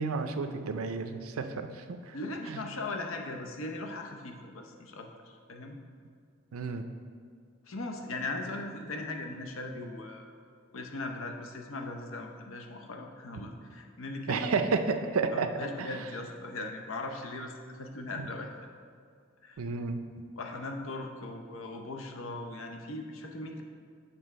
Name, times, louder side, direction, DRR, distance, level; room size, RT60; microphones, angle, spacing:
voice 1, 0.0-2.2 2.5-2.6 6.5-6.8 14.3-15.5 15.8-16.0 18.2-18.3 19.6-20.0, right 4 dB, 85° right, 8 dB, 0.4 m, -31 dB
voice 2, 2.1-5.8 7.7-10.3 10.7-14.6 15.3-18.5 19.4-19.7 20.4-23.6, left 2 dB, 75° left, 3 dB, 0.7 m, -39 dB
6.9 x 3.4 x 5.4 m, 2.1 s
head